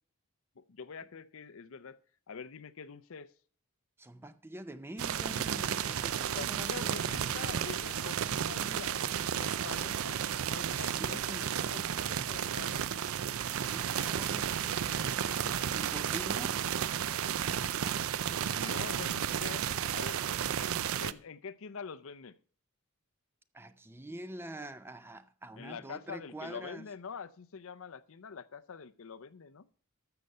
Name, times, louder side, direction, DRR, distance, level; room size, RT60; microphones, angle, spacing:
voice 1, 0.6-2.0 2.3-3.3 6.4-10.2 10.5-12.9 18.3-19.7 19.9-20.2 21.0-22.3 25.6-29.7, left 5 dB, 60° left, 0.6 m, -45 dB
voice 2, 4.0-7.1 8.6-8.9 10.7-11.5 13.4-16.6 23.5-26.8, right 1 dB, 10° right, 0.5 m, -45 dB
sound 1, 5.0-21.1, right 9 dB, 65° right, 0.4 m, -33 dB
13.0 x 6.8 x 5.4 m
head